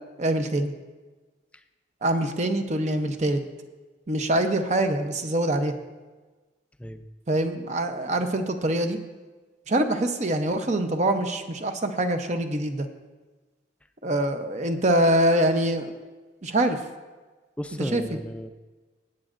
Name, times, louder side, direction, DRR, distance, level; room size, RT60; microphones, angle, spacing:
voice 1, 0.2-0.7 2.0-3.4 4.1-5.7 7.3-9.0 9.7-12.9 14.0-15.9 16.4-16.8 17.8-18.0, right 1 dB, 40° right, 7 dB, 0.7 m, -24 dB
voice 2, 17.6-18.5, equal, 5° left, 8 dB, 0.4 m, -34 dB
19.0 x 8.8 x 2.5 m, 1.3 s
head